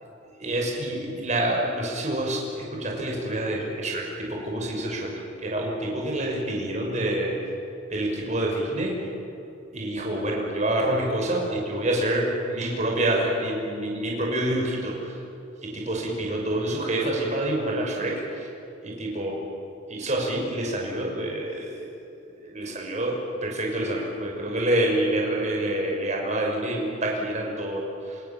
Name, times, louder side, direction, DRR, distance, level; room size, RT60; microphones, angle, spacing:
voice 1, 0.4-7.4 7.9-9.1 9.7-15.2 15.6-18.5 18.8-19.4 19.9-21.9 22.4-28.2, right 1 dB, 35° right, -1 dB, 6.2 m, -27 dB
28.0 x 27.5 x 7.4 m, 2.9 s
head